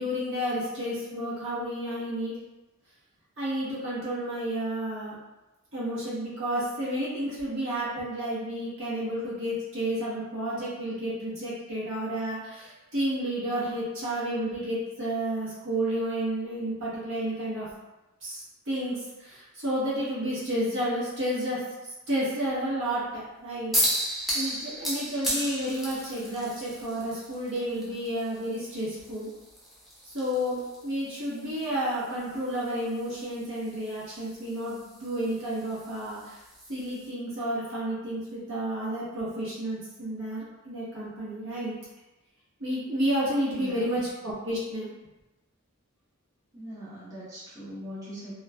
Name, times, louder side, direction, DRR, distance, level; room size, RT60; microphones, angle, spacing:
voice 1, 0.0-2.3 3.4-5.1 5.7-17.7 18.2-29.3 30.0-36.4 36.7-41.7 42.6-44.9, right 1 dB, 60° right, -8 dB, 0.9 m, -31 dB
sound 1, 23.7-37.1, equal, ahead, 0.5 m, -35 dB
voice 2, 43.5-44.0 46.5-48.3, equal, 15° right, -12 dB, 0.9 m, -41 dB
2.9 x 2.4 x 2.3 m, 1.0 s
head